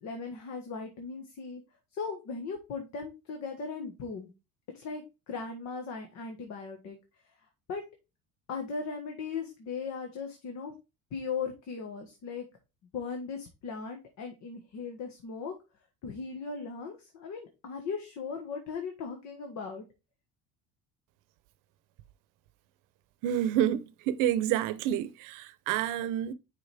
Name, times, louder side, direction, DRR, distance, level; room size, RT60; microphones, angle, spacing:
voice 1, 0.0-1.6 1.9-4.3 4.7-7.0 7.7-7.8 8.5-10.7 11.1-12.4 12.9-15.5 16.0-19.8, left 5 dB, 60° left, 1.6 m, -38 dB
voice 2, 23.2-26.3, right 11 dB, 80° right, 0.8 m, -29 dB
6.8 x 5.1 x 3.4 m
cardioid pair, 130°, 31 cm